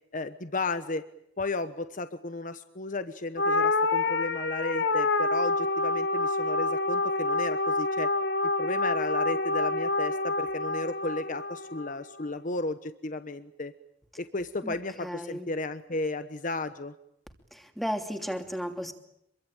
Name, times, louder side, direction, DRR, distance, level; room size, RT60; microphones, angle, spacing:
voice 1, 0.1-1.0 1.4-8.1 8.6-13.7 14.2-16.9, left 2 dB, 45° left, 10 dB, 1.2 m, -34 dB
sound 1, 3.4-11.9, left 2 dB, 70° left, 2.0 m, -27 dB
voice 2, 14.6-15.5 17.5-18.9, equal, ahead, 6 dB, 2.9 m, -34 dB
26.5 x 23.0 x 9.0 m, 0.76 s
head